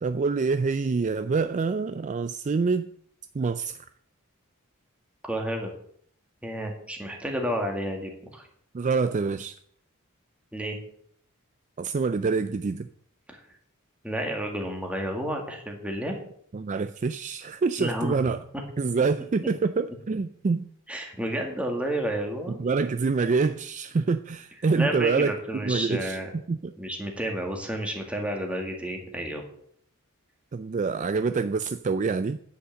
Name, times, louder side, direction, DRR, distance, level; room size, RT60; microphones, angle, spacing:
voice 1, 0.0-2.9 3.3-3.8 8.7-9.6 11.8-12.9 16.5-18.4 18.8-20.7 22.6-25.3 25.6-26.2 26.5-26.7 30.5-32.4, right 4 dB, 35° right, 11 dB, 0.4 m, -26 dB
voice 2, 5.2-5.7 6.4-8.5 10.5-10.8 13.3-13.4 14.0-16.2 17.8-18.1 20.9-22.6 24.7-26.3 26.8-29.4, right 1 dB, 5° right, 2 dB, 1.9 m, -31 dB
10.0 x 5.7 x 7.6 m, 0.65 s
head